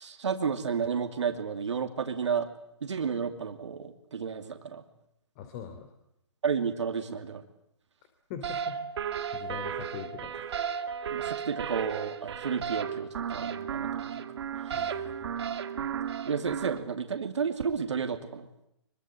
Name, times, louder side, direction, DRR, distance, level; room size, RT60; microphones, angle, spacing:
voice 1, 0.0-2.5 2.8-4.8 6.4-7.4 11.1-14.2 16.2-18.5, right 6 dB, 80° right, 7 dB, 2.7 m, -32 dB
voice 2, 5.3-5.9 8.3-10.5 14.7-15.4, left 7 dB, 35° left, 7 dB, 3.1 m, -43 dB
sound 1, 8.4-16.8, right 8 dB, 60° right, 2.1 m, -34 dB
24.5 x 24.0 x 7.9 m, 0.78 s
hypercardioid pair, 140°, 15 cm